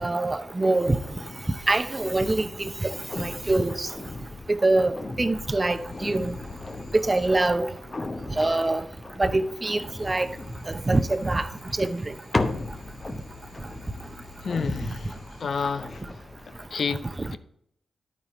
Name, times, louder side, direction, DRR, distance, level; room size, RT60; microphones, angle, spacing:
voice 1, 0.0-1.0 1.7-3.9 4.6-6.3 6.9-7.7 8.4-8.8 9.2-10.3 10.7-11.5 11.8-12.0 17.2-17.3, right 2 dB, 25° right, 0.7 m, -24 dB
sound 1, 0.7-16.7, left 2 dB, 35° left, 0.9 m, -37 dB
sound 2, 5.7-8.0 9.7-15.4, left 6 dB, 90° left, 3.1 m, -52 dB
voice 2, 14.4-15.1 15.4-16.0 16.5-17.4, left 5 dB, 60° left, 0.5 m, -30 dB
9.9 x 8.9 x 3.1 m
supercardioid pair, 55°, 0 cm